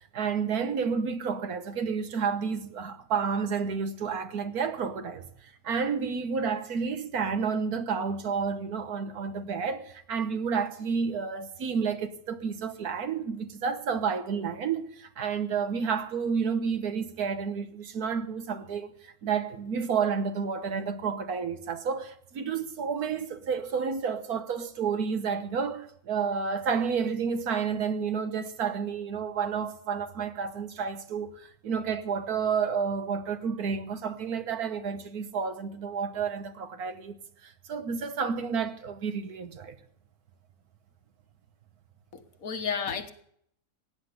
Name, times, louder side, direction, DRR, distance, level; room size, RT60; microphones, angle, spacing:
voice 1, 0.1-5.3 5.6-18.9 19.2-37.2 37.4-39.8, right 6 dB, 65° right, 1.5 m, -30 dB
voice 2, 42.1-43.1, left 6 dB, 55° left, 1.7 m, -32 dB
16.5 x 9.8 x 6.7 m
omnidirectional pair, 1.8 m